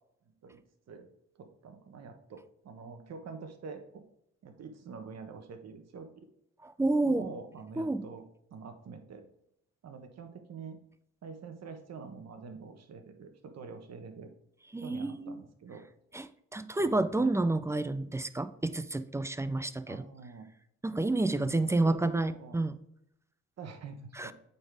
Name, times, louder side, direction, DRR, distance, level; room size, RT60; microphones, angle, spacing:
voice 1, 1.4-4.0 4.4-6.3 7.0-8.2 8.5-9.2 9.8-10.8 11.2-14.3 14.8-15.9 16.8-17.3 19.9-20.5 21.2-22.6 23.6-24.3, right 5 dB, 60° right, 6 dB, 1.2 m, -46 dB
voice 2, 6.6-7.3 7.8-8.1 14.7-15.4 16.1-16.3 16.5-20.0 20.8-22.8 24.2-24.3, right 2 dB, 10° right, 13 dB, 0.4 m, -29 dB
8.8 x 4.2 x 3.5 m, 0.75 s
cardioid pair, 90°, 30 cm